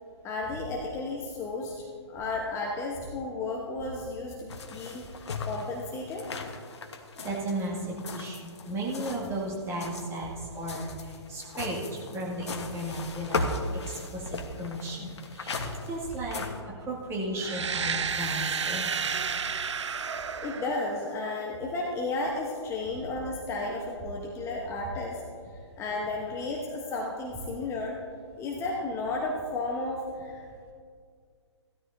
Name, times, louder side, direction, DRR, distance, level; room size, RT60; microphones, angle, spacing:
voice 1, 0.2-6.3 20.4-25.2 25.8-28.0 28.4-30.4, left 2 dB, 15° left, -1 dB, 1.0 m, -33 dB
sound 1, 4.5-9.4 9.7-16.6, left 3 dB, 65° left, 1.2 m, -37 dB
voice 2, 7.2-19.0, right 1 dB, 15° right, -3 dB, 2.1 m, -35 dB
sound 2, 17.4-21.3, right 6 dB, 75° right, 0.6 m, -31 dB
16.0 x 12.5 x 2.7 m, 2.2 s
figure-of-eight pair, 135°, 15 cm